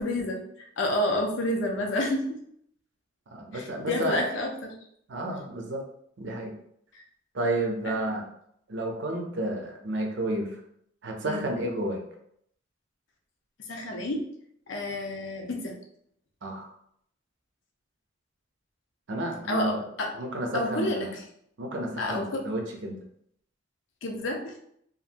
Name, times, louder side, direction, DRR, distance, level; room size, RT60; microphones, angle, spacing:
voice 1, 0.0-2.4 3.5-4.7 6.9-7.0 7.8-7.9 11.3-11.5 13.7-14.2 14.7-15.8 19.5-20.1 20.5-21.2 22.0-22.4 24.0-24.6, left 1 dB, 70° left, 1 dB, 0.6 m, -29 dB
voice 2, 3.3-4.2 5.1-5.8 6.2-6.5 7.3-8.2 8.7-10.6 11.0-12.0 16.4-16.7 19.1-19.8 20.1-21.1 21.6-23.0, right 1 dB, 65° right, 2 dB, 0.6 m, -31 dB
2.8 x 2.5 x 2.5 m, 0.70 s
head